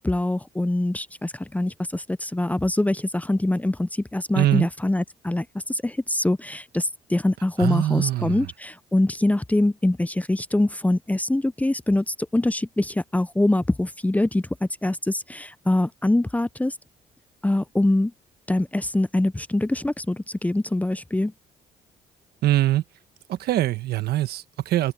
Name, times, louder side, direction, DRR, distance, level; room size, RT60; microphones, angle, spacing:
voice 1, 0.0-16.7 17.4-18.1 18.5-21.3, left 1 dB, 10° left, 0.6 m, -24 dB
voice 2, 4.3-4.7 7.6-8.5 22.4-22.8 23.3-24.9, right 14 dB, 75° right, 1.3 m, -23 dB
supercardioid pair, 70°, 16 cm